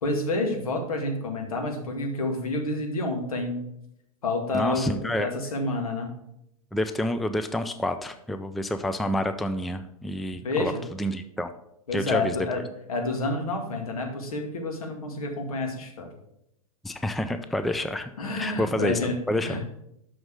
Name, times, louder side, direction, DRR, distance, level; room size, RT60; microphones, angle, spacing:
voice 1, 0.0-3.6 4.2-6.1 10.4-10.8 11.9-12.6 12.9-16.1 18.2-19.6, left 2 dB, 75° left, 2 dB, 2.1 m, -29 dB
voice 2, 4.5-5.3 6.7-10.7 11.0-11.5 11.9-12.4 16.8-18.1 18.4-19.0 19.3-19.6, left 1 dB, ahead, 9 dB, 0.4 m, -28 dB
6.2 x 6.1 x 6.5 m, 0.79 s
hypercardioid pair, 105°, 19 cm